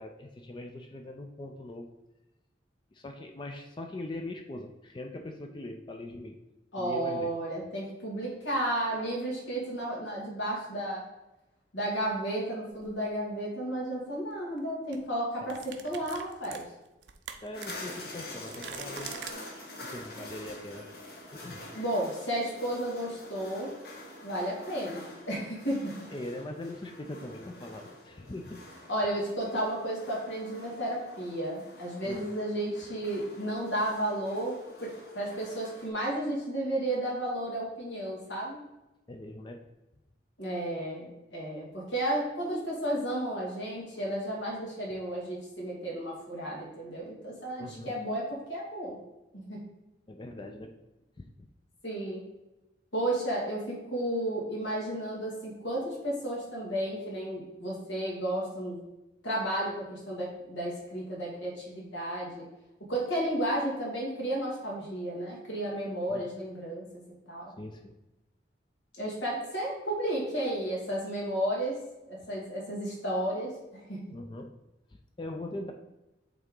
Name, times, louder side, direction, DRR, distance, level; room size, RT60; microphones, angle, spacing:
voice 1, 0.0-1.9 2.9-6.4 6.8-7.4 15.4-15.5 17.4-19.2 19.5-20.9 21.3-21.7 26.1-28.6 32.0-32.3 39.1-39.7 47.6-48.0 50.1-50.7 51.2-51.5 66.1-66.2 67.6-67.9 74.1-74.5 74.9-75.7, left 1 dB, 25° left, 4 dB, 0.4 m, -41 dB
voice 2, 6.7-11.0 11.7-16.6 21.7-23.7 24.2-25.9 28.9-34.5 34.8-38.6 40.4-49.0 49.3-49.6 51.8-52.2 52.9-58.8 59.2-62.4 62.9-66.9 67.3-67.5 69.0-71.7 72.1-74.0, right 1 dB, 80° left, -4 dB, 2.2 m, -33 dB
sound 1, 12.7-12.9 14.4-14.6 14.9-15.0 15.5-19.3, right 8 dB, 70° right, 0.5 m, -44 dB
sound 2, 17.5-35.9, left 1 dB, 55° left, 1.3 m, -47 dB
8.2 x 3.5 x 3.8 m, 1.0 s
head